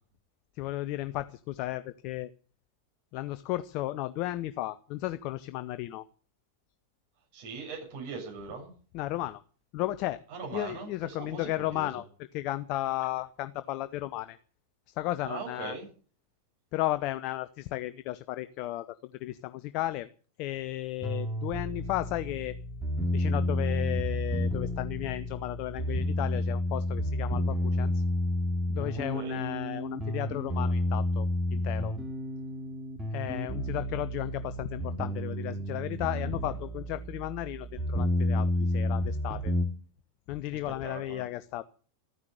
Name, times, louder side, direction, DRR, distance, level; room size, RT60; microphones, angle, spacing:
voice 1, 0.6-2.3 3.1-6.0 8.9-9.4 9.7-10.2 10.5-14.4 14.9-15.8 16.7-20.1 20.4-22.5 23.1-28.0 28.7-31.9 33.1-39.5 40.3-41.6, left 16 dB, 40° left, 13 dB, 0.8 m, -34 dB
voice 2, 7.3-8.7 10.3-11.9 15.2-15.9 29.1-29.4 40.5-41.3, right 5 dB, 50° right, 1 dB, 7.3 m, -40 dB
sound 1, 21.0-39.6, left 1 dB, 10° right, 3.2 m, -31 dB
14.0 x 9.9 x 8.5 m, 0.41 s
figure-of-eight pair, 90°, 0 cm